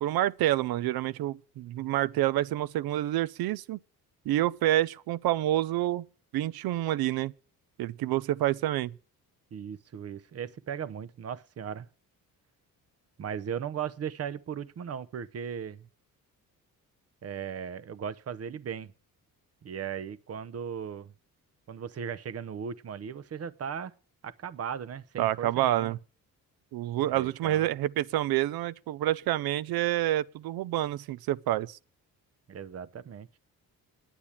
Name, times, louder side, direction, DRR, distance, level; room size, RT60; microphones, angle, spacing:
voice 1, 0.0-3.8 4.3-6.0 6.3-7.3 7.8-8.9 25.2-26.0 26.7-31.8, right 14 dB, 85° right, 0.6 m, -28 dB
voice 2, 9.5-11.9 13.2-15.9 17.2-18.9 19.6-21.1 21.7-23.9 24.2-26.0 27.1-27.7 32.5-33.3, right 7 dB, 40° right, 0.8 m, -37 dB
10.0 x 8.8 x 8.6 m
cardioid pair, 110°, 36 cm